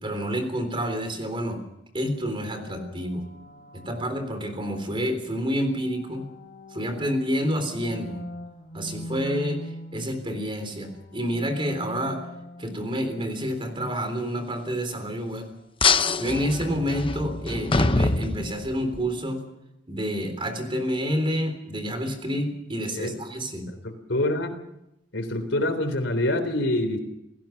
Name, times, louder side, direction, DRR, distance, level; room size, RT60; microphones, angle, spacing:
voice 1, 0.0-1.6 1.9-3.3 3.9-6.3 6.7-8.2 8.7-9.6 9.9-12.3 12.6-15.5 16.2-19.5 19.9-23.7, equal, 30° right, 7 dB, 3.8 m, -28 dB
sound 1, 2.5-4.9 5.5-10.4 10.7-15.6, equal, 45° left, 4.1 m, -43 dB
sound 2, 15.8-19.0, left 4 dB, 30° left, 0.9 m, -24 dB
voice 2, 23.8-24.5 25.1-27.0, left 1 dB, 75° left, 9 dB, 3.6 m, -26 dB
29.0 x 17.0 x 5.9 m, 0.86 s
head